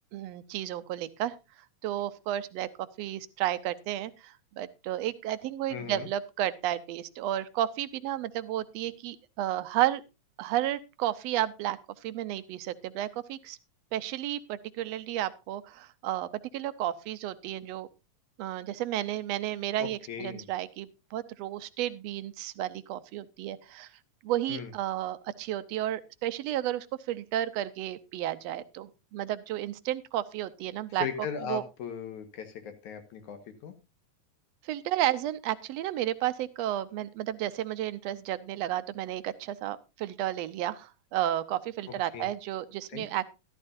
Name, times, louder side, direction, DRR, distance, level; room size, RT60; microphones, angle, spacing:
voice 1, 0.1-1.4 1.8-10.0 10.4-13.6 13.9-17.9 18.4-23.9 24.2-31.1 31.5-31.6 34.6-43.3, right 13 dB, 70° right, 13 dB, 1.7 m, -32 dB
voice 2, 5.7-6.1 19.8-20.5 24.5-24.7 31.0-33.7 42.1-42.3 42.9-43.1, left 7 dB, 80° left, 8 dB, 2.8 m, -38 dB
13.5 x 13.0 x 2.6 m, 0.27 s
omnidirectional pair, 3.4 m